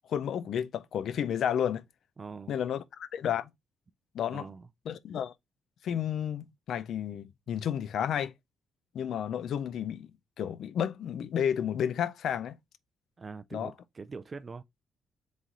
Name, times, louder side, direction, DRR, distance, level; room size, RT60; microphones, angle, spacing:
voice 1, 0.1-1.8 2.5-3.5 4.1-4.5 4.9-5.3 5.8-8.3 8.9-10.1 10.4-12.6 13.5-13.7, left 9 dB, 70° left, 0.4 m, -31 dB
voice 2, 2.2-2.5 4.3-4.7 13.2-14.6, right 4 dB, 35° right, 0.4 m, -43 dB
3.8 x 3.1 x 4.0 m
cardioid pair, 90°, 0 cm